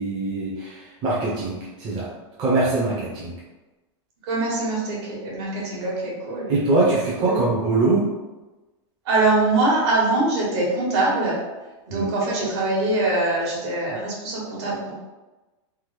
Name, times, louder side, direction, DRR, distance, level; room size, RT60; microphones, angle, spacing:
voice 1, 0.0-2.1 2.4-3.3 6.5-8.0 11.9-12.1, right 2 dB, 25° right, -7 dB, 0.6 m, -23 dB
voice 2, 4.3-6.5 7.2-7.3 9.1-11.4 11.9-14.9, right 2 dB, 60° right, -4 dB, 1.3 m, -23 dB
3.4 x 2.1 x 3.1 m, 1.1 s
supercardioid pair, 155°, 15 cm